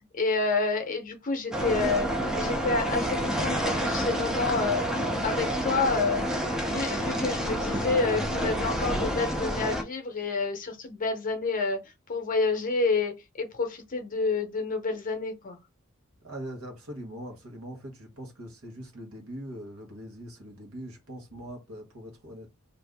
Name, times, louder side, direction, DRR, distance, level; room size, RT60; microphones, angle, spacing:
voice 1, 0.1-2.1 2.4-4.8 5.2-6.2 6.6-11.8 12.1-13.1 13.4-15.6, left 3 dB, 40° left, 0.7 m, -28 dB
sound 1, 1.5-9.8, equal, 5° right, 0.4 m, -29 dB
voice 2, 16.2-22.5, equal, 85° right, 1.2 m, -42 dB
2.6 x 2.5 x 3.4 m
head